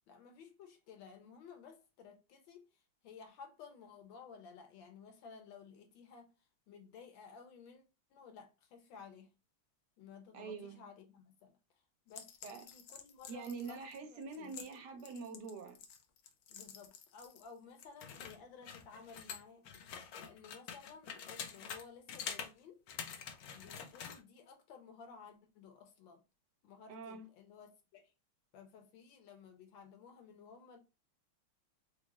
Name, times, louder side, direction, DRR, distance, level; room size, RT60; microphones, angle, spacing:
voice 1, 0.1-6.3 6.7-7.8 8.1-9.3 10.0-11.6 12.1-14.7 16.5-19.7 20.2-22.8 23.5-26.2 26.6-28.1 28.5-30.8, left 6 dB, 70° left, 1.5 m, -55 dB
voice 2, 10.3-10.8 12.4-12.6 13.3-15.8 26.9-27.3, right 4 dB, 65° right, 1.2 m, -45 dB
sound 1, 12.1-17.5 17.8-21.8 22.1-22.5 22.9-24.2, left 7 dB, 85° left, 0.8 m, -47 dB
4.6 x 2.0 x 2.9 m
omnidirectional pair, 2.3 m